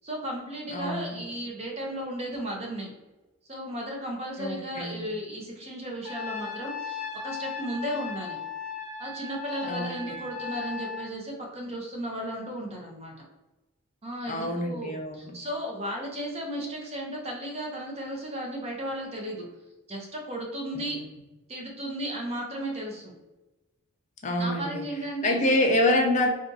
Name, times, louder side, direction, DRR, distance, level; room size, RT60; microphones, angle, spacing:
voice 1, 0.0-2.9 3.5-8.4 9.0-13.2 14.0-19.5 19.9-21.0 21.5-23.1 24.4-25.4, right 1 dB, 30° right, -1 dB, 0.6 m, -35 dB
voice 2, 0.7-1.2 4.4-5.1 9.6-10.2 14.3-15.3 20.7-21.0 24.2-24.8 25.2-26.3, left 1 dB, 35° left, 2 dB, 0.5 m, -26 dB
Trumpet, 6.0-11.1, left 6 dB, 90° left, 0.6 m, -36 dB
2.5 x 2.4 x 3.9 m, 1.1 s
head